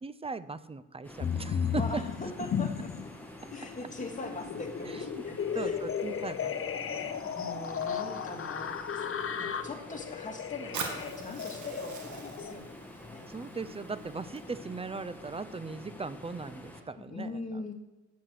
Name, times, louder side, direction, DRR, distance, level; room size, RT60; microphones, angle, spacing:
voice 1, 0.0-2.0 5.1-5.2 5.5-6.5 6.9-7.3 13.3-17.3, right 4 dB, 20° right, 15 dB, 0.5 m, -38 dB
sound 1, 1.0-16.8, left 1 dB, 5° left, 1.8 m, -48 dB
sound 2, 1.2-3.1 3.5-12.5, left 7 dB, 45° left, 0.9 m, -35 dB
voice 2, 1.7-2.9 3.5-5.8 6.9-9.0 9.4-13.3 17.0-17.7, left 2 dB, 25° left, 2 dB, 2.2 m, -41 dB
Fire, 10.7-14.7, right 5 dB, 75° right, 1.9 m, -43 dB
9.4 x 7.8 x 6.4 m, 1.1 s
cardioid pair, 90°, 30 cm